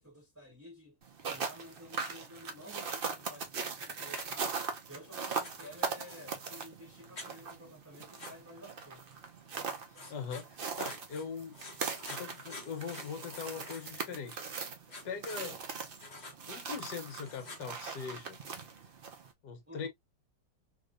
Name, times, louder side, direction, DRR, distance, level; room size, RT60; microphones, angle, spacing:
voice 1, 0.0-4.5 4.9-9.1 19.7-19.9, equal, 10° right, 1.4 m, -52 dB
sound 1, 1.0-19.3, right 5 dB, 70° right, 0.5 m, -40 dB
Writing, 4.1-4.3 5.4-6.4 7.2-7.3 8.2-8.3 9.9-11.3 11.5-14.0 14.9-15.4 16.0-16.4 17.0-17.6, left 3 dB, 30° left, 1.0 m, -49 dB
voice 2, 10.1-10.5 10.8-11.5 12.1-14.4 15.0-15.6 16.5-18.4 19.4-19.9, left 6 dB, 70° left, 1.4 m, -41 dB
3.2 x 3.0 x 2.4 m
omnidirectional pair, 1.9 m